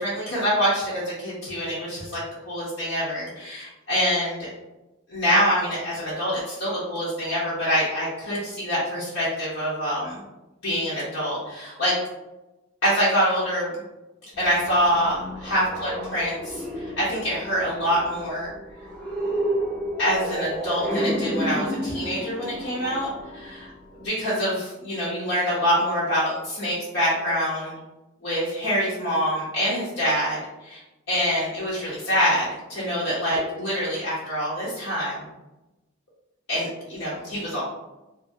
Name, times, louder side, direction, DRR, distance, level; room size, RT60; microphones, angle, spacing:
voice 1, 0.0-4.5 5.1-10.1 10.6-12.0 12.8-13.8 14.4-18.5 20.0-23.7 24.0-27.7 28.2-30.8 31.1-35.2 36.5-37.6, equal, 75° left, -10 dB, 0.9 m, -25 dB
sound 1, 14.3-24.1, equal, 5° left, 0.5 m, -31 dB
2.7 x 2.6 x 2.7 m, 1.0 s
head